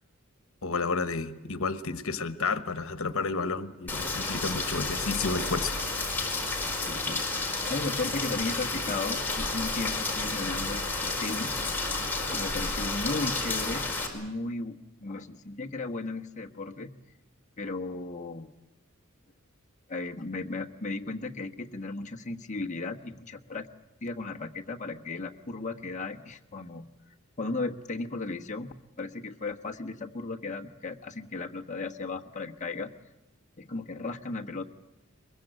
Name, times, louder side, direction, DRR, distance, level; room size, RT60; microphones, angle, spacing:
voice 1, 0.6-5.8, left 4 dB, 80° left, 12 dB, 1.2 m, -31 dB
Rain, 3.9-14.1, left 3 dB, 10° left, 4.6 m, -31 dB
voice 2, 6.8-11.6 11.9-13.9 14.1-16.9 17.6-18.5 19.9-23.7 24.0-26.9 27.4-32.9 33.6-34.6, left 3 dB, 35° left, 2 dB, 1.3 m, -35 dB
22.5 x 22.5 x 9.0 m, 1.0 s
head